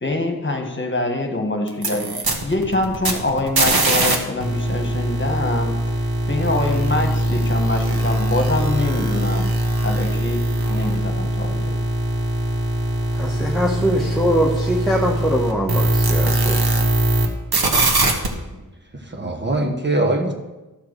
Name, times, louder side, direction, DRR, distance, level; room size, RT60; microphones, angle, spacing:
voice 1, 0.0-6.0 6.3-9.5 9.8-11.8, left 2 dB, 30° left, 3 dB, 1.4 m, -25 dB
sound 1, 1.7-4.2 4.4-17.3 17.5-18.3, right 1 dB, 80° right, 1.3 m, -21 dB
voice 2, 13.1-16.6, equal, ahead, -3 dB, 1.1 m, -22 dB
voice 3, 19.0-20.3, right 2 dB, 30° right, 1 dB, 1.2 m, -22 dB
13.0 x 4.7 x 6.5 m, 1.1 s
wide cardioid pair, 85°, 37 cm